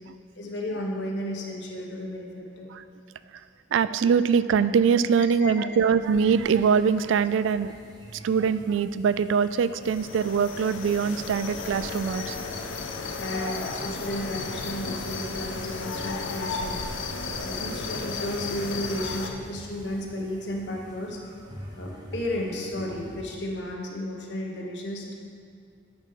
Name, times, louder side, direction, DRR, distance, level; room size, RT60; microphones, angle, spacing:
voice 1, 0.4-2.7 5.4-5.7 13.2-16.8 17.4-21.2 21.8-25.1, left 1 dB, 65° left, -1 dB, 1.3 m, -33 dB
voice 2, 3.7-7.7 8.1-12.4, right 6 dB, 80° right, 15 dB, 0.3 m, -23 dB
sound 1, 6.0-23.2, equal, 20° right, 1.2 m, -47 dB
sound 2, 9.8-19.3, left 4 dB, 85° left, 0.8 m, -34 dB
10.0 x 5.2 x 5.7 m, 2.3 s
head